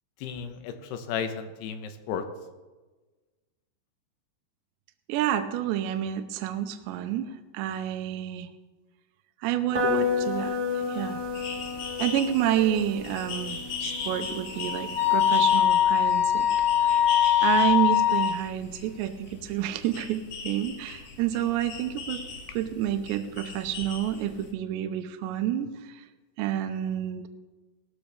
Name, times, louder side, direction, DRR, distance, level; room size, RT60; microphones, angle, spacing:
voice 1, 0.2-2.2, left 7 dB, 75° left, 7 dB, 2.7 m, -34 dB
voice 2, 5.1-8.5 9.4-10.6 10.9-11.2 12.0-16.5 16.8-17.0 17.4-22.2 22.5-26.0 26.4-27.2, right 11 dB, 80° right, 7 dB, 2.9 m, -29 dB
sound 1, 9.7-15.5, left 4 dB, 35° right, 1.6 m, -32 dB
sound 2, 11.2-24.5, left 5 dB, 55° left, 2.7 m, -39 dB
Wind instrument woodwind instrument, 14.0-18.3, left 11 dB, 35° left, 5.3 m, -22 dB
19.0 x 13.5 x 3.4 m, 1.3 s
omnidirectional pair, 5.3 m